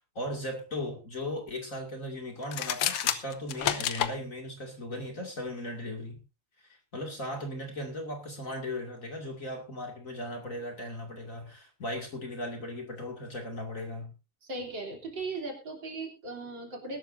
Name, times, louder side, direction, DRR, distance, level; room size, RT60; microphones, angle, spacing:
voice 1, 0.0-6.2 6.6-14.1, left 1 dB, 35° left, 3 dB, 2.7 m, -37 dB
sound 1, 2.4-4.1, left 10 dB, 80° left, 1.8 m, -29 dB
voice 2, 14.4-17.0, right 3 dB, 55° right, 1 dB, 3.9 m, -38 dB
21.0 x 12.0 x 2.6 m, 0.30 s
omnidirectional pair, 2.4 m